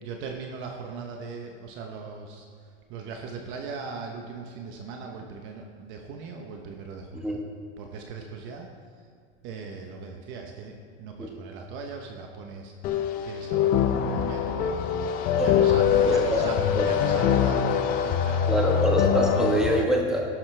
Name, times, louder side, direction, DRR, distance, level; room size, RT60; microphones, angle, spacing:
voice 1, 0.0-2.5 2.9-7.4 7.8-8.7 9.4-12.7 13.2-14.7 15.0-18.5, right 4 dB, 35° right, 2 dB, 0.9 m, -39 dB
sound 1, 12.8-19.8, left 8 dB, 25° left, 0.5 m, -23 dB
voice 2, 15.4-15.7 16.0-16.4 16.7-16.8 18.5-20.3, equal, ahead, -2 dB, 1.3 m, -25 dB
15.0 x 12.0 x 3.3 m, 2.1 s
supercardioid pair, 160°, 34 cm